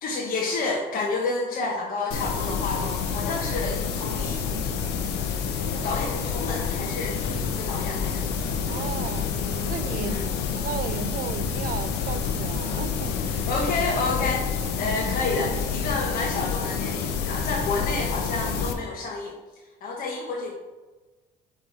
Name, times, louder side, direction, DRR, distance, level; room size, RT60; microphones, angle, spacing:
voice 1, 0.0-4.4 5.6-8.3 10.0-10.3 13.5-14.5 14.8-19.4 19.8-20.5, left 3 dB, 60° left, -1 dB, 1.0 m, -29 dB
sound 1, 2.1-18.7, left 6 dB, 85° left, 0.8 m, -28 dB
voice 2, 8.7-9.3 9.7-10.2 10.5-13.5 14.8-14.9, right 10 dB, 60° right, 11 dB, 0.5 m, -35 dB
5.4 x 4.2 x 4.9 m, 1.2 s
cardioid pair, 110°, 17 cm